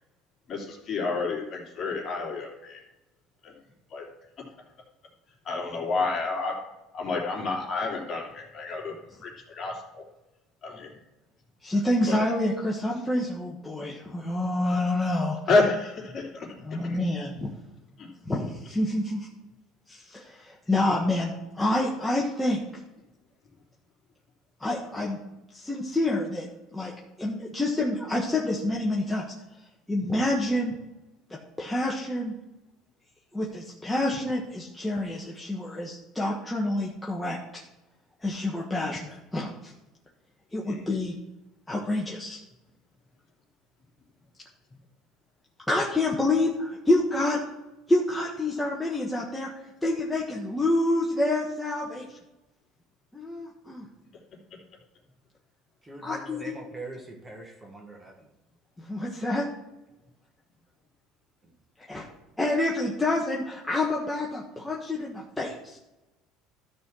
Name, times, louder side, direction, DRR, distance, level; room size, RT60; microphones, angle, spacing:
voice 1, 0.5-2.8 3.4-3.5 3.9-4.1 4.4-4.5 5.4-6.5 6.9-10.0 10.6-11.0 12.1-12.2 15.5-17.0 18.0-18.1 40.7-40.9, left 3 dB, 40° left, -1 dB, 3.0 m, -29 dB
voice 2, 11.6-15.4 16.6-17.5 18.2-19.3 19.9-22.6 24.6-25.2 25.5-26.5 26.7-26.9 27.2-29.2 29.9-30.8 31.6-32.3 33.3-37.6 38.2-39.7 40.5-41.1 41.7-42.4 45.7-47.4 47.9-49.5 49.8-52.2 53.1-53.9 56.0-56.6 58.8-59.5 61.9-62.1 62.4-65.8, left 1 dB, 5° left, -4 dB, 1.4 m, -27 dB
voice 3, 55.8-58.3 61.4-61.5, right 2 dB, 15° right, 2 dB, 1.6 m, -42 dB
13.0 x 4.3 x 6.2 m, 0.98 s
cardioid pair, 125°, 0 cm